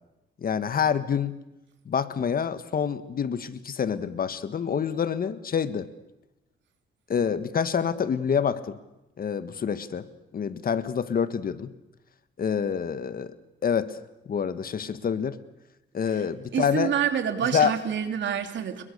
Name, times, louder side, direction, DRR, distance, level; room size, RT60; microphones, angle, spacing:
voice 1, 0.4-1.4 1.8-5.9 7.1-8.8 9.2-10.1 10.3-11.7 12.4-13.3 13.6-13.9 14.3-15.4 15.9-16.9 17.5-17.7, left 7 dB, 50° left, 13 dB, 1.5 m, -27 dB
voice 2, 16.5-18.8, right 8 dB, 65° right, 7 dB, 3.0 m, -27 dB
28.5 x 22.0 x 6.8 m, 0.96 s
cardioid pair, 90°, 20 cm